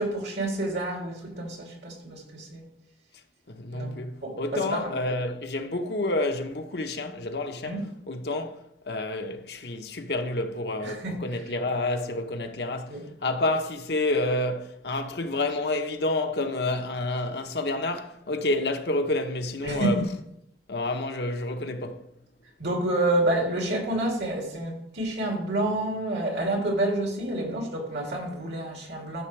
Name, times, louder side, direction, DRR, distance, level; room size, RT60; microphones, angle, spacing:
voice 1, 0.0-2.6 3.7-3.9 4.2-4.9 7.6-7.8 10.8-11.1 12.9-13.0 19.6-19.9 22.6-29.2, right 2 dB, 75° right, 2.9 m, -28 dB
voice 2, 3.5-8.6 8.8-20.0 20.7-22.1, left 2 dB, 65° left, 1.0 m, -29 dB
12.0 x 6.9 x 3.3 m
head